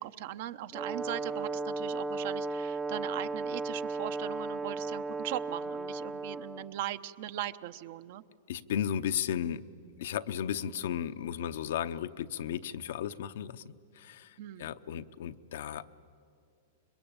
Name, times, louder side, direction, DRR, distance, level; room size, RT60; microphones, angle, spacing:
voice 1, 0.0-8.2 14.4-14.7, right 13 dB, 60° right, 13 dB, 0.8 m, -39 dB
Brass instrument, 0.7-6.7, right 3 dB, 10° right, 0.6 m, -35 dB
voice 2, 8.5-9.6 10.0-15.9, left 9 dB, 75° left, 11 dB, 0.8 m, -35 dB
26.5 x 22.0 x 8.9 m, 2.4 s
supercardioid pair, 140°, 0 cm